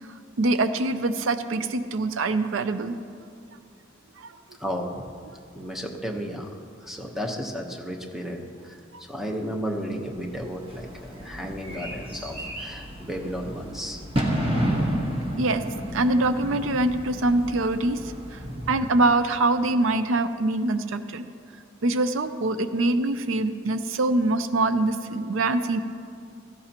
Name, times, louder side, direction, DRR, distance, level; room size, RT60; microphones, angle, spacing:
voice 1, 0.4-2.9 4.2-4.3 15.4-15.6 15.9-18.0 18.7-21.2 21.8-25.8, right 2 dB, 70° right, 11 dB, 0.5 m, -24 dB
voice 2, 4.6-5.0 5.5-6.5 6.8-8.8 9.1-14.0 18.4-18.8, equal, ahead, 1 dB, 1.0 m, -33 dB
Bird / Fireworks, 10.1-19.3, equal, 25° right, 1.2 m, -31 dB
16.0 x 14.5 x 2.9 m, 2.3 s
head